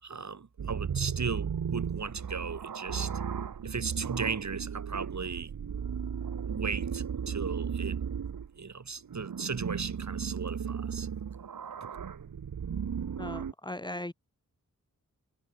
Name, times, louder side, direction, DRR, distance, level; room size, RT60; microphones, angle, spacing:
voice 1, 0.0-3.1 3.6-5.5 6.5-8.0 8.6-11.1, right 5 dB, 55° right, 7.4 m, -36 dB
sound 1, 0.6-8.5 9.0-13.5, right 7 dB, 75° right, 1.8 m, -35 dB
voice 2, 13.2-14.1, left 1 dB, 15° left, 3.5 m, -38 dB
wide cardioid pair, 130°, 33 cm